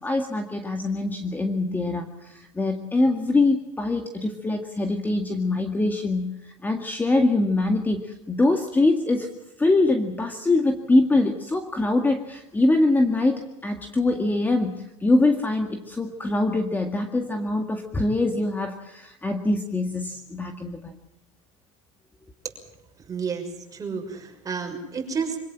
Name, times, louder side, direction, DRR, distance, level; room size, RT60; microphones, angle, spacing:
voice 1, 0.0-9.3 9.6-20.9, left 2 dB, 10° left, 5 dB, 1.9 m, -23 dB
voice 2, 23.1-23.4 23.7-25.4, right 5 dB, 20° right, 3 dB, 6.2 m, -30 dB
25.5 x 17.5 x 7.5 m, 0.92 s
supercardioid pair, 130°, 17 cm